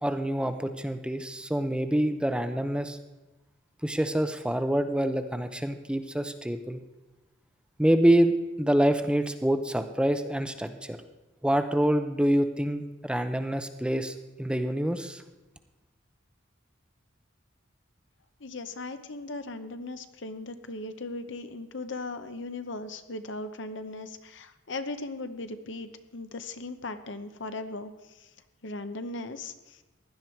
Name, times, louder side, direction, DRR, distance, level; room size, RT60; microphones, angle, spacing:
voice 1, 0.0-3.0 3.8-6.8 7.8-11.0 11.4-15.2, right 1 dB, 5° right, 8 dB, 0.6 m, -26 dB
voice 2, 18.4-28.3 28.6-29.8, left 2 dB, 65° left, 9 dB, 0.9 m, -38 dB
16.0 x 11.0 x 4.5 m, 1.1 s
head